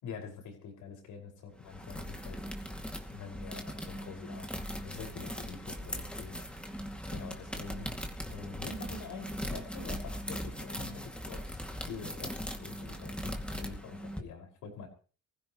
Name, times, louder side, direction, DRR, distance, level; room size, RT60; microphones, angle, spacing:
voice 1, 0.0-2.7 3.1-6.4 7.1-14.9, left 5 dB, 85° left, 1 dB, 5.7 m, -46 dB
sound 1, 1.6-14.2, equal, 5° left, 2.4 m, -40 dB
23.5 x 15.5 x 3.1 m, 0.38 s
cardioid pair, 90°, 30 cm